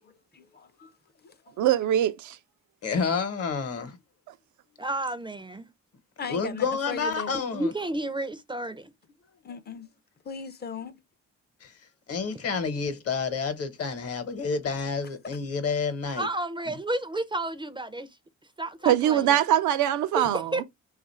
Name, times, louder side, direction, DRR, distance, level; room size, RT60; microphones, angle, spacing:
voice 1, 0.0-0.9 1.6-1.7 2.9-3.0 6.2-7.5 9.4-9.9 10.2-10.9, left 5 dB, 35° left, 0.5 m, -38 dB
voice 2, 1.6-2.4 18.9-20.5, right 11 dB, 75° right, 0.5 m, -22 dB
voice 3, 2.8-4.0 6.3-7.7 11.6-11.7 12.1-16.3, left 5 dB, 50° left, 1.0 m, -29 dB
voice 4, 4.8-5.7 7.3-8.9 16.1-18.1 18.6-19.4 20.1-20.6, right 2 dB, 15° right, 0.4 m, -31 dB
2.9 x 2.4 x 4.1 m
cardioid pair, 90°, 30 cm